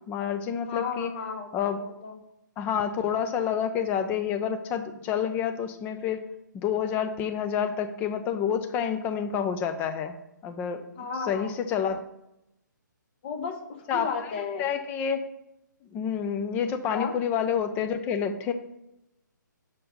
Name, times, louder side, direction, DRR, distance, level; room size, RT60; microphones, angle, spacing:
voice 1, 0.0-1.1 1.5-1.8 2.6-6.2 6.5-10.2 10.4-10.8 11.3-12.0 13.9-14.3 14.6-15.3 15.9-18.5, left 8 dB, 15° left, 8 dB, 0.5 m, -28 dB
voice 2, 0.7-2.2 11.0-11.5 13.2-14.7 16.9-17.1, left 5 dB, 35° left, 4 dB, 1.0 m, -34 dB
6.4 x 4.4 x 5.2 m, 0.85 s
figure-of-eight pair, 140°, 11 cm